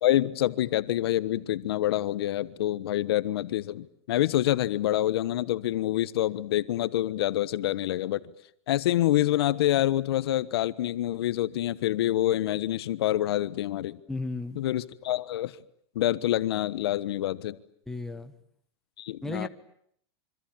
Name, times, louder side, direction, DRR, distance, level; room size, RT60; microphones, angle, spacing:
voice 1, 0.0-8.2 8.7-14.0 14.5-15.6 15.9-17.6 19.0-19.5, left 13 dB, 70° left, 1.3 m, -26 dB
voice 2, 14.1-14.6 17.9-18.3 19.2-19.5, left 2 dB, 5° left, 1.5 m, -34 dB
26.5 x 25.5 x 8.8 m
supercardioid pair, 155°, 13 cm